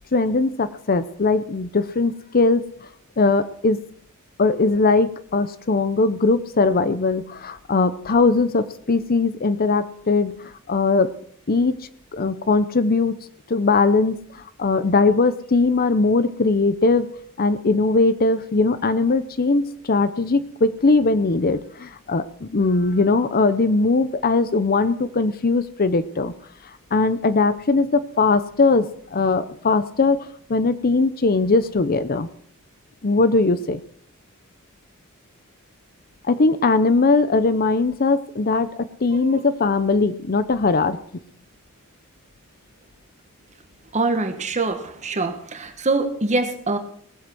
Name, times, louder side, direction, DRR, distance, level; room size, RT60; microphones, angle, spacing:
voice 1, 0.1-2.6 3.2-3.8 4.4-10.3 10.7-11.1 11.5-11.7 12.1-13.2 13.5-17.1 17.4-26.3 26.9-32.3 33.0-33.8 36.3-41.0, left 3 dB, 40° left, 13 dB, 0.6 m, -20 dB
voice 2, 43.9-46.8, right 3 dB, 30° right, 8 dB, 1.4 m, -24 dB
19.0 x 7.9 x 6.2 m, 0.63 s
head